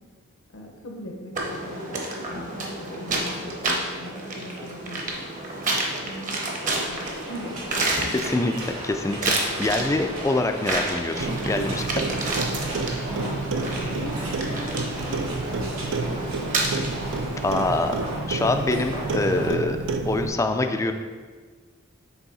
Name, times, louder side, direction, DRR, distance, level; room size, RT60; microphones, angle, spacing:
voice 1, 0.5-5.1 6.0-7.6 7.8-8.1 13.1-16.6, left 1 dB, 65° left, 0 dB, 0.8 m, -40 dB
sound 1, 1.3-18.1, right 2 dB, 35° right, 0.9 m, -30 dB
sound 2, 6.7-19.5, right 1 dB, 90° right, 1.7 m, -37 dB
voice 2, 8.2-12.1 17.4-18.0 18.3-19.8 20.0-20.9, left 2 dB, 15° left, 7 dB, 0.3 m, -25 dB
Clock, 11.2-20.3, right 3 dB, 60° right, 0.4 m, -29 dB
7.1 x 3.5 x 4.0 m, 1.5 s
head